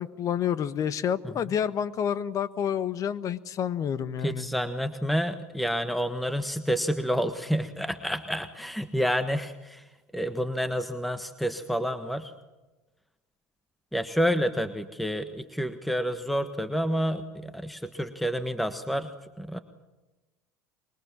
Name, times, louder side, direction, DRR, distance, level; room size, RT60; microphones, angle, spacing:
voice 1, 0.0-4.5, left 8 dB, 45° left, 14 dB, 1.4 m, -29 dB
voice 2, 4.2-9.8 10.1-12.3 13.9-19.6, equal, ahead, 10 dB, 1.4 m, -29 dB
25.0 x 23.0 x 7.4 m, 1.1 s
hypercardioid pair, 80°, 8 cm